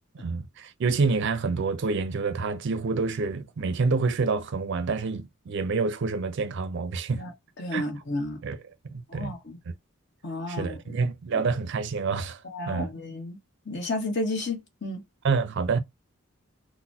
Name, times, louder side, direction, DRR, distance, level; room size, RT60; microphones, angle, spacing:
voice 1, 0.1-7.2 7.7-7.8 8.4-8.6 8.9-9.3 10.5-12.4 12.7-12.9 15.2-15.8, right 4 dB, 55° right, 0.4 m, -27 dB
voice 2, 7.6-8.4 9.1-9.6 10.2-10.9 11.3-11.5 12.4-13.4 13.6-15.0, left 2 dB, 50° left, 1.2 m, -32 dB
3.9 x 2.1 x 2.7 m
head